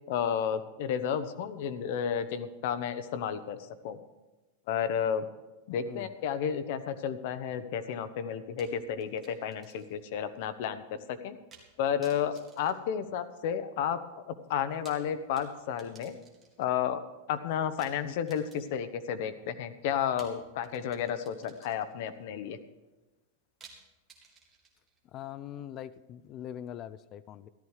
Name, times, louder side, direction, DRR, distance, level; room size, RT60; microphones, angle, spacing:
voice 1, 0.1-3.6 3.8-4.0 4.7-5.3 5.7-11.4 11.8-14.0 14.3-16.2 16.6-17.0 17.3-22.6, left 8 dB, 50° left, 11 dB, 1.0 m, -32 dB
sound 1, 8.6-10.1 10.4-10.5 11.5-11.7 12.0-13.6 14.6-16.7 17.8-19.0 20.2-22.1 23.6-25.0, right 5 dB, 15° right, 2.2 m, -57 dB
voice 2, 25.1-27.5, left 11 dB, 30° left, 15 dB, 0.4 m, -42 dB
14.0 x 12.5 x 4.9 m, 1.1 s
supercardioid pair, 165°, 0 cm